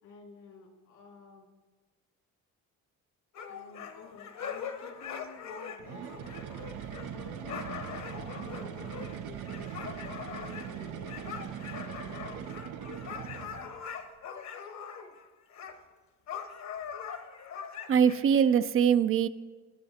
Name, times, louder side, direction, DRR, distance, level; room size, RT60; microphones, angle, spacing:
voice 1, 0.0-1.5 3.5-12.5, left 4 dB, 85° left, 0 dB, 2.4 m, -51 dB
sound 1, 3.3-15.2 15.5-15.8 16.3-18.2, left 7 dB, 65° left, 1.1 m, -42 dB
sound 2, 5.8-13.8, right 9 dB, 85° right, 0.6 m, -41 dB
voice 2, 17.9-19.3, right 8 dB, 45° right, 13 dB, 0.4 m, -23 dB
17.0 x 10.5 x 2.8 m, 1.3 s
cardioid pair, 90°, 30 cm